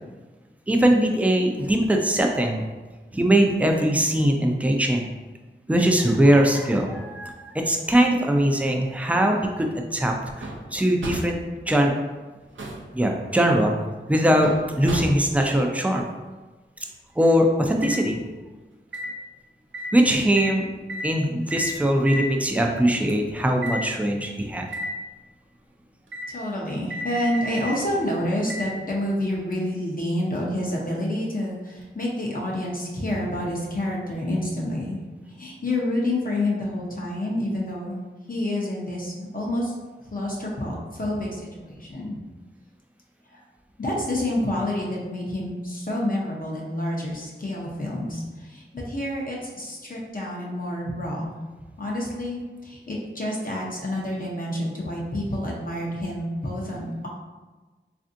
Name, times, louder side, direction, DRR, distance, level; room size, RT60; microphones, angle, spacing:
voice 1, 0.7-2.6 3.1-5.1 5.7-11.4 11.7-11.9 12.9-13.7 14.1-14.5 14.8-16.1 17.2-18.2 19.9-20.7 21.0-24.7, right 1 dB, 5° right, 2 dB, 0.4 m, -21 dB
sound 1, 10.4-10.7 11.0-11.4 12.3-12.9 14.4-15.4 17.8-18.0 18.9-19.1 19.7-19.9 20.4-20.6 20.9-21.1 21.5-21.7 22.1-22.3 23.1-23.2 23.6-23.8 24.7-24.9 26.1-26.3 26.9-27.8 28.5-28.7 29.5-29.6, equal, 75° right, 0.5 m, -32 dB
voice 2, 26.3-35.0 35.3-38.0 38.3-39.7 40.0-42.2 43.3-43.4 43.8-51.3 51.8-57.1, left 1 dB, 45° left, -3 dB, 0.7 m, -28 dB
3.3 x 2.5 x 2.6 m, 1.2 s
wide cardioid pair, 50°, 20 cm